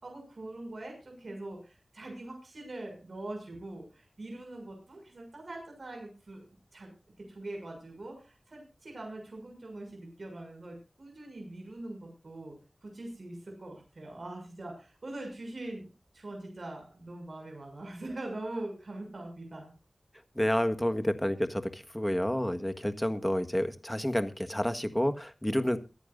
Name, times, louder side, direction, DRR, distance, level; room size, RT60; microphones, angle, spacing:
voice 1, 0.0-6.9 7.2-15.9 16.1-19.7, right 2 dB, 60° right, 2 dB, 6.8 m, -43 dB
voice 2, 20.3-25.8, equal, 10° left, 9 dB, 1.5 m, -29 dB
23.0 x 10.5 x 2.6 m, 0.30 s
wide cardioid pair, 70°, 0 cm